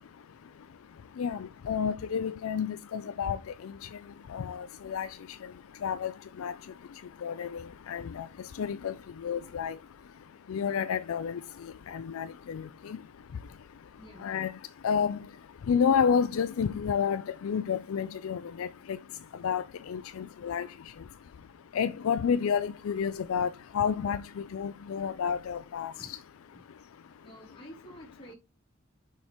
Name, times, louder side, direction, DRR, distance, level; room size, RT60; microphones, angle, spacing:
voice 1, 1.2-3.4 4.3-5.1 5.8-6.1 6.4-6.5 7.2-7.6 7.9-8.3 8.6-8.9 9.2-9.8 10.5-11.4 11.9-12.6 14.2-14.5 14.8-15.2 15.7-18.7 19.4-20.7 21.7-23.5 23.7-24.2 24.5-25.9, left 7 dB, 75° left, 0.4 m, -29 dB
voice 2, 14.0-14.3 26.0-26.1 26.4-26.5 27.2-28.4, right 1 dB, 25° left, 3.0 m, -50 dB
6.3 x 5.4 x 3.0 m
head